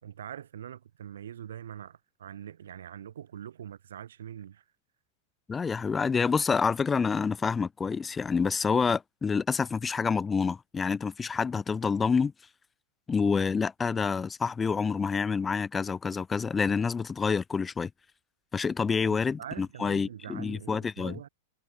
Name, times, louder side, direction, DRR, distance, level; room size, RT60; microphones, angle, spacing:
voice 1, 0.0-4.6 19.0-21.3, right 9 dB, 90° right, 3.4 m, -43 dB
voice 2, 5.5-12.3 13.1-17.9 18.5-21.2, left 5 dB, 15° left, 0.7 m, -28 dB
supercardioid pair, 145°, 0 cm